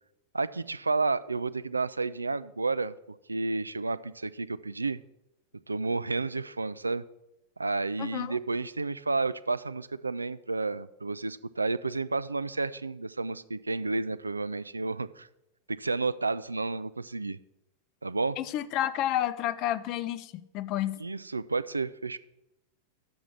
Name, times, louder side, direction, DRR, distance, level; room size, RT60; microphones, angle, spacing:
voice 1, 0.3-2.9 3.3-5.0 5.7-7.0 7.6-15.3 15.8-17.4 18.0-18.4 21.0-22.2, right 3 dB, 80° right, 16 dB, 0.3 m, -31 dB
voice 2, 8.0-8.4 18.4-21.0, left 12 dB, 40° left, 15 dB, 0.5 m, -30 dB
7.1 x 6.1 x 7.4 m, 0.89 s
figure-of-eight pair, 90°, 0 cm